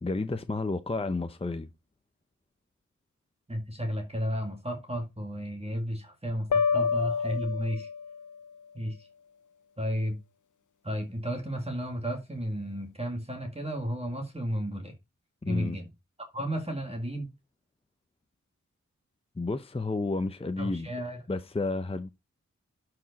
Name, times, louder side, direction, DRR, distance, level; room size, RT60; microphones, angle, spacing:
voice 1, 0.0-1.7 15.4-15.8 19.4-20.9 21.3-22.1, left 3 dB, 20° left, 0.6 m, -31 dB
voice 2, 3.5-7.9 8.7-9.1 9.8-10.2 10.8-15.0 15.5-15.9 16.2-17.3 20.6-21.2, equal, 20° right, 2.0 m, -33 dB
sound 1, 6.5-8.4, left 6 dB, 85° left, 0.6 m, -28 dB
12.0 x 4.8 x 4.1 m
wide cardioid pair, 65°, 30 cm